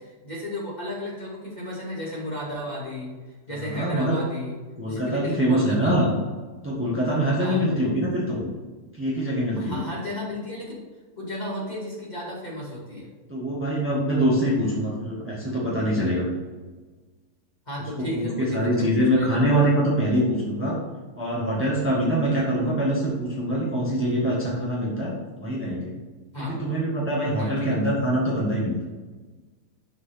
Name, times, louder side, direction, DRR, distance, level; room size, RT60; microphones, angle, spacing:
voice 1, 0.0-4.6 4.9-5.9 7.4-7.6 9.6-10.8 11.2-13.1 17.7-19.4 26.3-26.6 27.3-27.8, left 1 dB, 25° left, -5 dB, 2.4 m, -34 dB
voice 2, 3.5-4.2 4.8-6.1 6.6-8.5 9.0-9.9 13.3-16.3 18.0-20.8 21.2-26.0 26.4-28.8, equal, 10° right, -6 dB, 1.7 m, -24 dB
6.8 x 4.6 x 5.9 m, 1.3 s
omnidirectional pair, 1.7 m